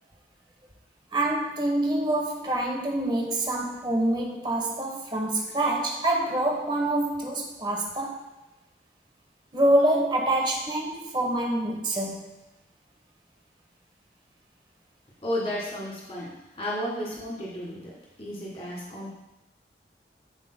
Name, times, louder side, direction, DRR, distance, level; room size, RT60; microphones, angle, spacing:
voice 1, 1.1-8.3 9.5-12.4, right 1 dB, 25° right, 1 dB, 1.1 m, -26 dB
voice 2, 15.2-17.9 18.2-19.1, equal, 35° left, -5 dB, 1.9 m, -33 dB
12.5 x 5.0 x 2.2 m, 0.96 s
head